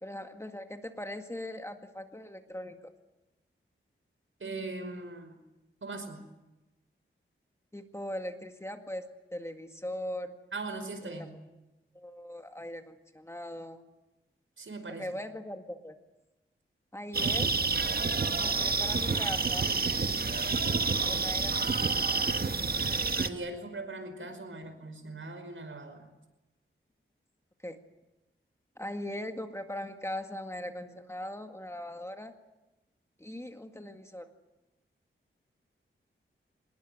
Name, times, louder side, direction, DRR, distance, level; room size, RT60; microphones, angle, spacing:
voice 1, 0.0-2.9 7.7-10.4 11.0-11.3 11.9-13.8 15.0-16.0 16.9-17.6 18.4-19.7 21.1-22.3 27.6-27.8 28.8-32.4 33.2-34.3, left 1 dB, 15° left, 5 dB, 1.9 m, -40 dB
voice 2, 4.4-5.4 5.8-6.2 10.5-11.3 14.6-15.1 23.2-26.1, right 2 dB, 70° right, 8 dB, 5.3 m, -40 dB
sound 1, 17.1-23.3, right 4 dB, 45° right, 1.3 m, -28 dB
26.0 x 21.0 x 9.5 m, 0.99 s
wide cardioid pair, 115°, 21 cm